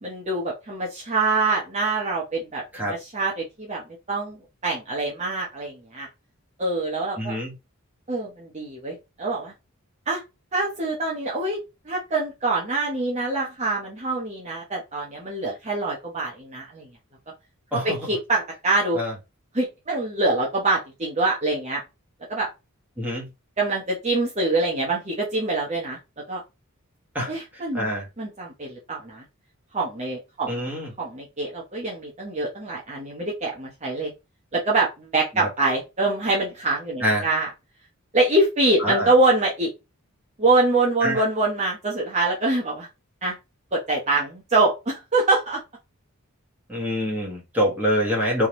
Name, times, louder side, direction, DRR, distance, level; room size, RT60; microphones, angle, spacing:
voice 1, 0.0-2.6 2.9-3.8 4.1-6.1 6.6-7.3 8.1-9.5 10.1-10.2 10.5-11.6 11.8-16.9 17.7-19.0 19.5-21.8 22.3-22.5 23.6-26.0 26.3-26.4 27.3-27.9 28.2-29.2 29.7-30.7 31.0-34.1 34.5-37.5 38.1-39.7 40.4-42.9 43.2-43.4 43.7-45.6, right 2 dB, 30° right, 0.9 m, -24 dB
voice 2, 7.2-7.5 17.7-18.0 18.9-19.1 23.0-23.3 27.1-28.1 30.5-30.9 35.3-35.5 37.0-37.2 38.8-39.1 41.0-41.3 46.7-48.5, equal, 10° right, 1.5 m, -25 dB
3.5 x 2.9 x 2.9 m
head